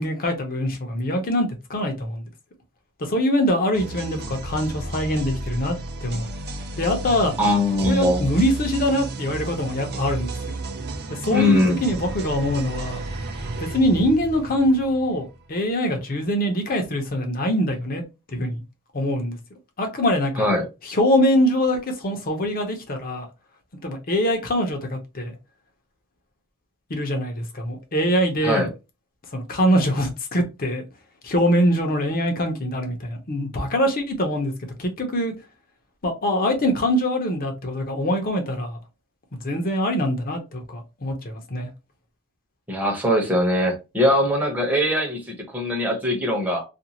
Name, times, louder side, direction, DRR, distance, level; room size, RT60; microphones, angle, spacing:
voice 1, 0.0-2.3 3.0-5.8 6.0-6.3 6.8-7.3 7.8-10.6 11.2-13.0 13.6-18.0 18.3-18.6 18.9-19.4 19.8-20.5 20.8-23.3 23.8-25.3 26.9-28.7 29.3-30.8 31.2-34.5 34.8-35.3 36.0-38.8 39.3-41.7, equal, 45° left, 0.7 m, -23 dB
sound 1, 3.7-15.5, right 2 dB, 50° right, 0.5 m, -33 dB
voice 2, 7.4-8.3 11.3-11.8 20.4-20.6 28.4-28.7 42.7-46.6, left 1 dB, 10° right, 0.9 m, -21 dB
2.5 x 2.4 x 2.9 m
head